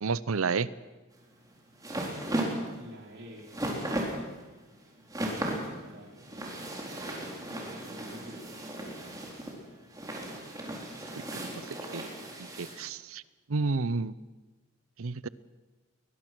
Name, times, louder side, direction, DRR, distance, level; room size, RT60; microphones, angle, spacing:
voice 1, 0.0-0.7 11.3-12.1 12.6-13.2 13.5-14.1 15.0-15.3, right 4 dB, 75° right, 17 dB, 0.7 m, -31 dB
sound 1, 1.1-12.8, right 1 dB, 15° right, 4.0 m, -36 dB
voice 2, 2.8-3.6 5.4-6.7 7.7-8.6, equal, 60° right, -1 dB, 4.7 m, -50 dB
21.5 x 21.0 x 6.2 m, 1.2 s
head